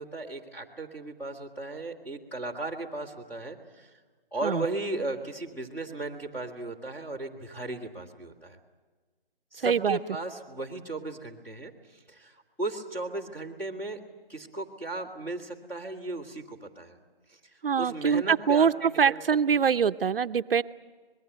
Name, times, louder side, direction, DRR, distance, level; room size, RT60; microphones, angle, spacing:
voice 1, 0.0-3.9 4.3-8.6 9.5-11.7 12.1-14.0 14.3-17.0 17.3-17.4 17.8-19.2 19.5-19.6, right 2 dB, 5° left, -4 dB, 2.0 m, -36 dB
voice 2, 9.6-10.0 17.6-20.6, right 7 dB, 70° right, 11 dB, 0.7 m, -24 dB
25.5 x 21.0 x 8.1 m, 1.4 s
hypercardioid pair, 160°, 30 cm